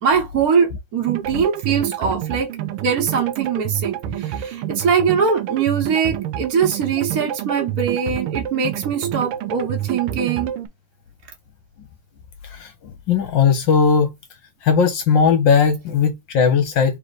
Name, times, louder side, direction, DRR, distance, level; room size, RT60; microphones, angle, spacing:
voice 1, 0.0-2.5 2.8-10.5, right 6 dB, 50° right, 1.4 m, -22 dB
sound 1, 1.1-10.7, right 10 dB, 85° right, 1.6 m, -28 dB
voice 2, 12.4-14.1 14.6-17.0, left 6 dB, 65° left, 1.3 m, -18 dB
3.4 x 3.2 x 4.0 m
omnidirectional pair, 2.4 m